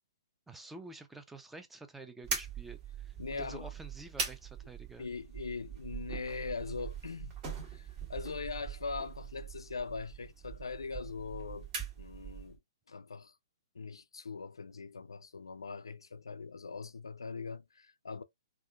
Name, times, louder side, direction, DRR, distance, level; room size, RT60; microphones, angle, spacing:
voice 1, 0.5-5.1, right 3 dB, 5° right, 0.5 m, -49 dB
sound 1, 2.2-12.6, right 6 dB, 30° right, 1.3 m, -42 dB
voice 2, 3.2-3.7 4.2-4.3 5.0-7.3 7.7-11.7 12.0-12.6 12.9-13.3 13.7-18.2, left 4 dB, 85° left, 0.4 m, -41 dB
3.5 x 2.4 x 2.3 m
hypercardioid pair, 125°, 2 cm